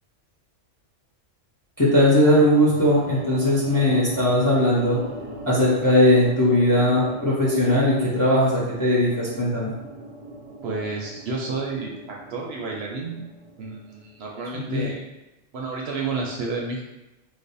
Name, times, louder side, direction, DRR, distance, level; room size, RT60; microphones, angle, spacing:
voice 1, 1.8-5.0 5.5-9.7 14.7-14.9, left 1 dB, 20° left, -6 dB, 0.6 m, -19 dB
sound 1, 2.0-14.3, right 1 dB, 50° right, 0.4 m, -39 dB
voice 2, 10.6-13.3 13.6-15.0 15.5-16.8, right 3 dB, 65° right, -2 dB, 0.8 m, -31 dB
3.3 x 2.1 x 4.0 m, 1.0 s
omnidirectional pair, 1.3 m